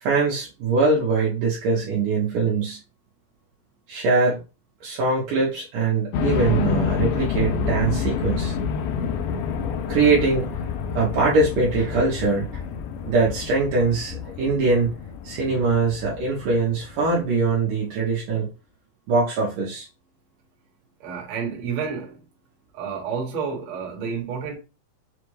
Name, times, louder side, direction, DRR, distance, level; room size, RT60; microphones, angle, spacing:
voice 1, 0.0-2.8 3.9-4.4 4.8-8.6 9.9-10.5 10.9-12.5 13.0-14.9 15.2-18.5 19.1-19.9, right 3 dB, 70° right, 2.4 m, -22 dB
sound 1, 6.1-17.8, left 6 dB, 80° left, 1.9 m, -28 dB
voice 2, 21.0-22.2 22.7-24.6, right 6 dB, 55° right, 2.2 m, -30 dB
6.3 x 2.4 x 3.1 m
omnidirectional pair, 4.1 m